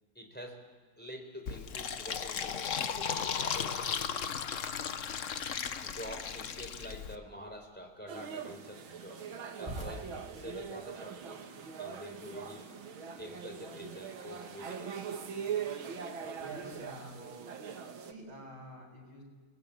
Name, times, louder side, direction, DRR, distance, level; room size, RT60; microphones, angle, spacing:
voice 1, 0.1-0.7 1.0-4.3 5.8-9.2 9.6-11.5 11.8-12.7 13.2-15.1, equal, 5° left, 3 dB, 4.2 m, -47 dB
Fill (with liquid), 1.5-7.2, left 7 dB, 50° left, 1.1 m, -36 dB
sound 1, 8.1-18.1, right 7 dB, 90° right, 2.3 m, -41 dB
sound 2, 9.6-17.2, equal, 15° right, 7.5 m, -51 dB
voice 2, 16.4-17.2 18.0-19.2, equal, 55° right, 1 dB, 7.4 m, -48 dB
29.0 x 20.5 x 8.7 m, 1.5 s
omnidirectional pair, 2.1 m